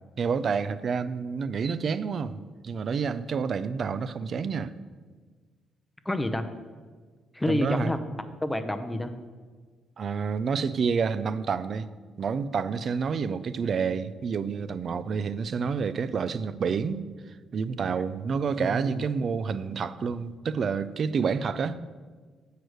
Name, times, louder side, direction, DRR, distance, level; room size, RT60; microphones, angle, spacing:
voice 1, 0.2-4.7 7.5-7.9 10.0-11.9 12.2-17.0 17.5-21.8, right 5 dB, 50° right, 0.4 m, -29 dB
voice 2, 6.1-6.5 7.3-8.0 8.4-9.1 18.6-19.0, left 1 dB, 10° left, 0.6 m, -28 dB
8.0 x 4.7 x 6.3 m
cardioid pair, 115°, 0 cm